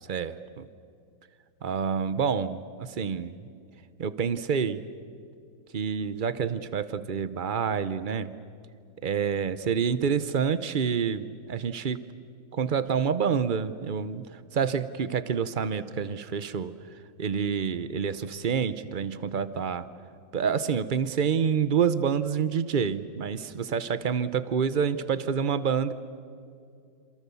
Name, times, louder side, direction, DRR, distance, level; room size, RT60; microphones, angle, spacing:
voice 1, 0.1-0.6 1.6-3.3 4.0-4.8 5.7-8.3 9.0-12.0 12.5-16.7 17.2-19.9 20.3-25.9, right 7 dB, 90° right, 13 dB, 0.4 m, -28 dB
28.0 x 28.0 x 7.0 m, 2.4 s
omnidirectional pair, 2.0 m